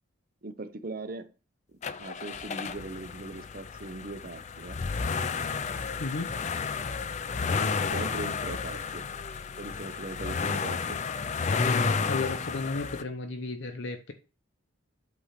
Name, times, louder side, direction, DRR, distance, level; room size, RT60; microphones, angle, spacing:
voice 1, 0.4-1.3 2.0-4.8 7.5-7.6 7.9-9.1 9.6-11.0, right 2 dB, 45° right, 0.7 m, -40 dB
sound 1, 1.8-13.0, left 5 dB, 35° left, 0.4 m, -31 dB
voice 2, 6.0-6.3 11.7-14.1, left 3 dB, 65° left, 0.7 m, -34 dB
8.4 x 3.2 x 5.7 m
head